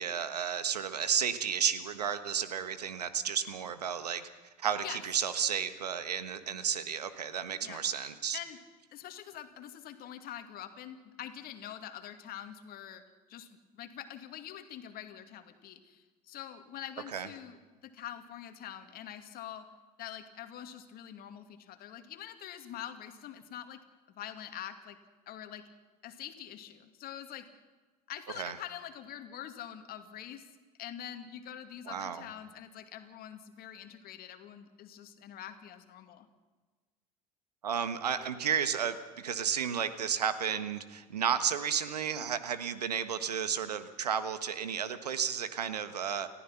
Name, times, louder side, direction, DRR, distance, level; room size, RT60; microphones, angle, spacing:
voice 1, 0.0-4.2 4.6-8.4 17.1-17.3 28.4-28.6 31.9-32.2 37.6-46.3, right 8 dB, 85° right, 11 dB, 1.4 m, -32 dB
voice 2, 4.6-5.0 7.6-7.8 8.3-8.6 8.9-13.0 13.3-13.5 13.7-17.6 17.8-19.7 20.0-23.8 24.1-25.0 25.3-25.6 26.0-27.5 28.1-30.5 30.8-36.3 42.2-42.3, left 10 dB, 50° left, 7 dB, 2.4 m, -45 dB
30.0 x 15.0 x 5.9 m, 1.3 s
hypercardioid pair, 70°, 20 cm